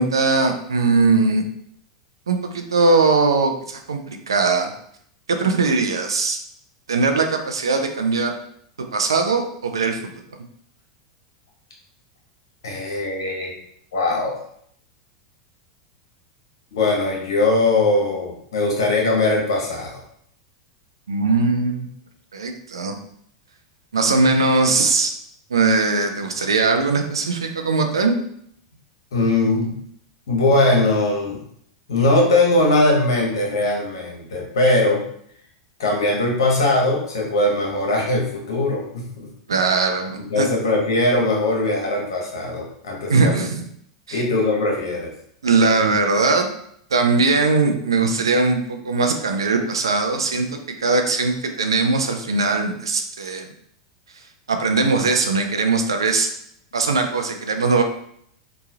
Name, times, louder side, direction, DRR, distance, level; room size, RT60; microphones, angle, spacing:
voice 1, 0.0-1.4 2.3-4.7 5.3-6.4 6.9-8.3 8.9-10.0 21.1-21.9 22.3-23.0 23.9-25.1 25.5-28.1 39.5-40.5 43.1-43.7 44.1-44.2 45.4-46.5 46.9-50.5 50.8-53.5 54.5-56.3 56.7-57.8, right 3 dB, 85° right, 5 dB, 0.4 m, -20 dB
voice 2, 12.6-13.5 13.9-14.4 16.7-20.0 29.1-29.8 30.3-31.4 31.9-35.0 35.8-39.3 40.1-43.3 44.1-45.1, left 2 dB, 75° left, -1 dB, 1.0 m, -20 dB
3.0 x 2.3 x 2.7 m, 0.68 s
hypercardioid pair, 95°, 2 cm